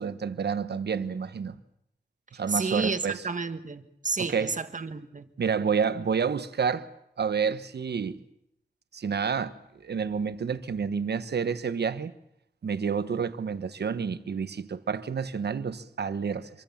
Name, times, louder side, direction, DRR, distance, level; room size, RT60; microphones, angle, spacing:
voice 1, 0.0-1.6 2.3-3.2 4.2-4.5 5.4-6.9 7.2-8.2 8.9-9.5 9.8-12.1 12.6-16.5, right 6 dB, 85° right, 1.2 m, -29 dB
voice 2, 2.5-5.3, right 4 dB, 50° right, 1.8 m, -31 dB
26.0 x 23.5 x 7.3 m
wide cardioid pair, 65°, 17 cm